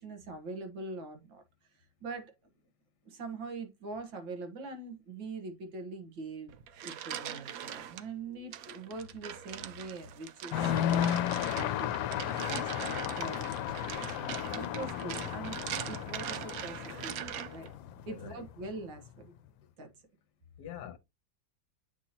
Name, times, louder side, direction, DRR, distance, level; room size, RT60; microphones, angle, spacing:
voice 1, 0.0-1.4 1.7-2.3 3.1-6.6 6.8-11.1 11.4-17.7 18.1-19.3 19.8-19.9, right 3 dB, 85° right, 2.1 m, -43 dB
sound 1, 6.5-8.0 8.5-17.7, right 10 dB, 65° right, 0.9 m, -41 dB
sound 2, 10.5-18.8, left 11 dB, 85° left, 1.3 m, -34 dB
voice 2, 18.1-18.4 20.6-21.0, left 9 dB, 65° left, 1.4 m, -44 dB
8.2 x 2.9 x 4.2 m
omnidirectional pair, 2.0 m